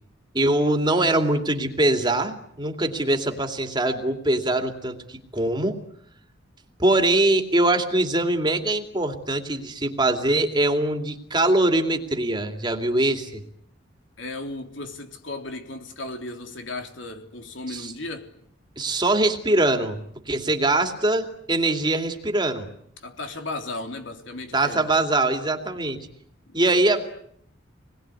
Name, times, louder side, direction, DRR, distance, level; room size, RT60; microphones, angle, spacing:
voice 1, 0.3-5.8 6.8-13.4 17.7-17.9 18.8-20.0 20.3-22.7 24.5-26.1 26.5-27.1, right 2 dB, 25° right, 2.7 m, -22 dB
voice 2, 14.2-18.3 23.0-24.9 26.5-26.7, left 2 dB, 70° left, 3.5 m, -35 dB
27.5 x 21.0 x 9.8 m
head